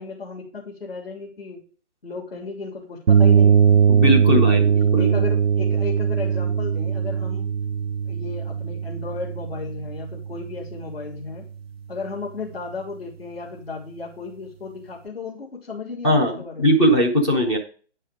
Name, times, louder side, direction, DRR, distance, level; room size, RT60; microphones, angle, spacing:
voice 1, 0.0-1.6 2.0-3.6 4.4-4.6 5.0-7.5 8.1-11.4 11.9-16.8, left 4 dB, 60° left, -5 dB, 3.2 m, -34 dB
sound 1, 3.1-10.8, right 7 dB, 60° right, 0.5 m, -20 dB
voice 2, 3.9-5.1 16.0-17.6, equal, 10° left, -1 dB, 0.6 m, -20 dB
10.0 x 5.5 x 4.9 m, 0.39 s
figure-of-eight pair, 140°, 34 cm